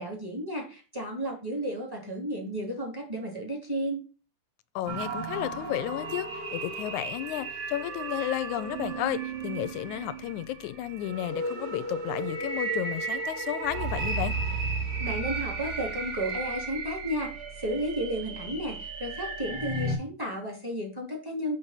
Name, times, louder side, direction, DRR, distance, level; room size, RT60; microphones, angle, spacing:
voice 1, 0.0-4.0 15.0-21.6, equal, 5° right, 2.6 m, -33 dB
voice 2, 4.8-14.4, left 13 dB, 85° left, 2.0 m, -33 dB
sound 1, 4.9-19.9, right 3 dB, 60° right, 3.6 m, -34 dB
6.7 x 6.5 x 5.6 m
omnidirectional pair, 3.5 m